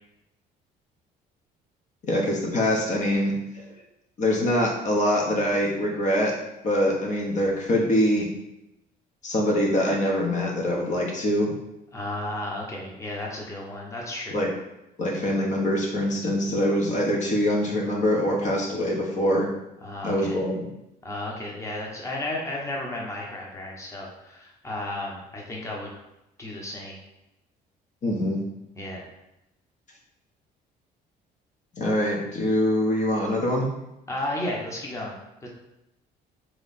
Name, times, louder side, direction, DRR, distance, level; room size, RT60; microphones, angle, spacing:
voice 1, 2.0-3.6 4.2-6.3 6.6-8.3 9.2-11.5 14.3-14.5 15.0-19.5 20.0-20.7 28.0-28.4 31.7-33.7, left 1 dB, 45° left, -1 dB, 0.9 m, -24 dB
voice 2, 11.9-14.4 19.8-20.4 21.0-25.9 26.4-26.9 28.8-29.0 34.1-35.1 35.4-35.5, left 1 dB, 15° left, -2 dB, 0.9 m, -33 dB
3.6 x 3.2 x 4.1 m, 0.89 s
cardioid pair, 110°, 17 cm